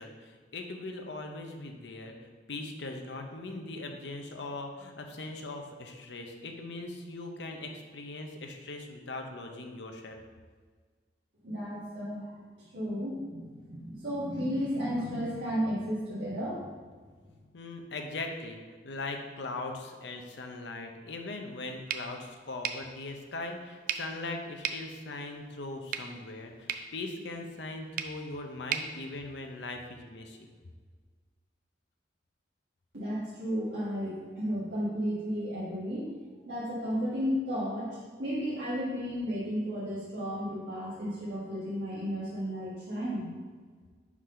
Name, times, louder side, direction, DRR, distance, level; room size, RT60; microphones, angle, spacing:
voice 1, 0.0-2.1 2.5-10.2 17.5-18.6 18.8-30.5, left 2 dB, 75° left, 4 dB, 0.7 m, -40 dB
voice 2, 11.4-16.7 32.9-36.1 36.4-43.3, equal, 80° right, -10 dB, 1.5 m, -33 dB
sound 1, 21.9-29.9, right 8 dB, 50° right, 0.4 m, -40 dB
4.8 x 3.9 x 5.6 m, 1.5 s
head